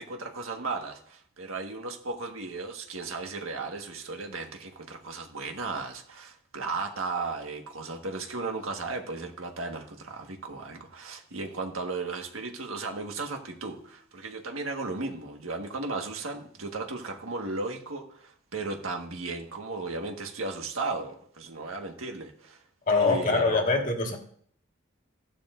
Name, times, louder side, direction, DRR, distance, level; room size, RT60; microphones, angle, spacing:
voice 1, 0.0-22.6 22.9-23.6, right 3 dB, 85° right, 1.6 m, -35 dB
voice 2, 22.9-24.2, left 3 dB, 40° left, 1.6 m, -24 dB
15.0 x 12.0 x 2.6 m
head